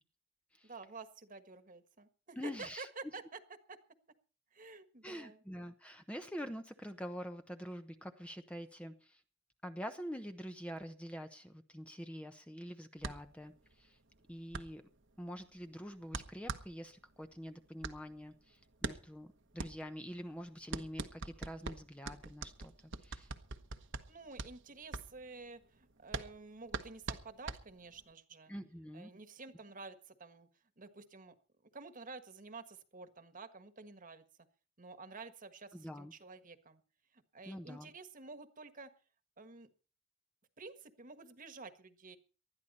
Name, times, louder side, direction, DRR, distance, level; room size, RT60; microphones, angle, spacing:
voice 1, 0.6-3.4 3.7-3.8 4.5-5.4 24.1-28.5 28.9-30.5 30.8-31.3 31.7-34.2 34.8-36.8 37.1-38.9 39.4-39.7 40.6-42.2, right 4 dB, 40° right, 10 dB, 1.6 m, -50 dB
voice 2, 2.4-2.9 5.0-9.2 9.6-14.0 14.3-14.8 15.2-19.3 19.5-22.7 23.0-23.3 28.5-29.1 35.7-36.1 37.5-37.9, equal, 5° left, 7 dB, 0.9 m, -46 dB
sound 1, 13.0-28.1, right 3 dB, 65° right, 1.2 m, -44 dB
19.5 x 12.5 x 4.3 m, 0.36 s
head